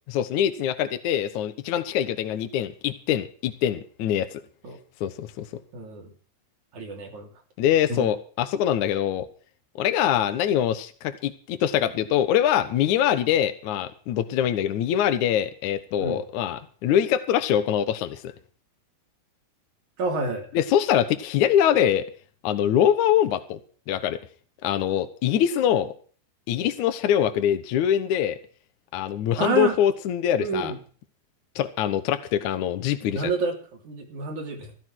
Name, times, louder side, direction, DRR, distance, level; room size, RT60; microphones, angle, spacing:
voice 1, 0.1-4.3 5.0-5.5 7.6-9.3 9.8-18.3 20.5-22.1 22.4-23.6 23.9-24.2 24.6-25.9 26.5-28.4 28.9-30.7 31.6-33.3, left 10 dB, 70° left, 10 dB, 1.9 m, -23 dB
voice 2, 5.7-6.1 6.7-7.3 7.9-8.1 16.0-16.2 20.0-20.5 29.4-29.8 30.4-30.8 33.1-33.6 33.8-34.7, right 4 dB, 45° right, 1 dB, 4.3 m, -28 dB
15.0 x 14.0 x 4.6 m, 0.42 s
omnidirectional pair, 4.9 m